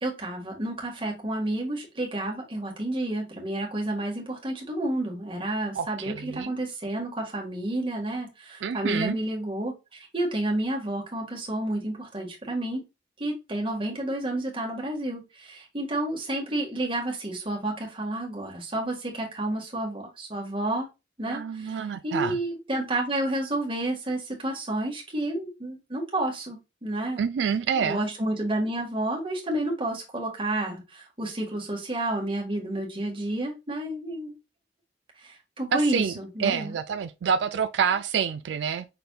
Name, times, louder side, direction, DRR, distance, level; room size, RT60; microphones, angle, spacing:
voice 1, 0.0-12.8 13.2-20.9 21.2-27.2 27.8-34.3 35.2-36.7, right 1 dB, 30° right, 1.6 m, -30 dB
voice 2, 5.8-6.5 8.6-9.2 21.3-22.4 27.2-28.0 35.7-36.1 36.4-38.9, right 7 dB, 85° right, 0.4 m, -27 dB
5.9 x 3.4 x 2.3 m
head